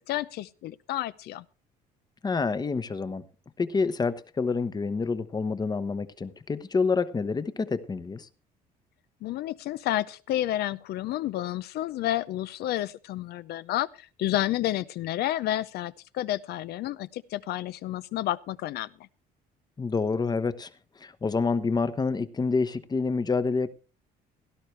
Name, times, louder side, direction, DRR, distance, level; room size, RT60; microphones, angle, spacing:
voice 1, 0.1-1.4 9.2-18.9, left 13 dB, 70° left, 0.6 m, -30 dB
voice 2, 2.2-3.2 3.6-8.3 19.8-20.7 21.0-23.7, left 4 dB, 25° left, 1.0 m, -27 dB
17.0 x 11.5 x 3.2 m
cardioid pair, 110°, 17 cm